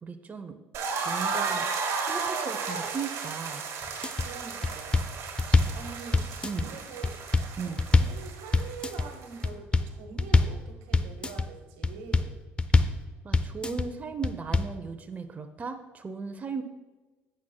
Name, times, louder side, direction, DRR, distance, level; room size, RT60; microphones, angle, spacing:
voice 1, 0.0-0.6 1.0-1.7 2.1-3.6 5.5-5.8 6.4-6.7 7.6-7.8 13.2-16.6, right 5 dB, 30° right, 6 dB, 0.8 m, -36 dB
sound 1, 0.7-9.5, right 5 dB, 60° right, 1.6 m, -34 dB
sound 2, 3.8-4.3 4.6-5.8 6.1-6.7 7.0-8.2 8.5-9.1 9.4-9.9 10.2-10.6 10.9-11.5 11.8-12.3 12.6-13.0 13.3-13.9 14.2-14.7, left 3 dB, 20° left, 0.6 m, -24 dB
voice 2, 4.1-5.0 5.7-6.3 6.6-7.2 7.5-12.4, right 5 dB, 85° right, 5 dB, 1.3 m, -44 dB
17.0 x 6.5 x 2.3 m, 1.2 s
supercardioid pair, 75°, 5 cm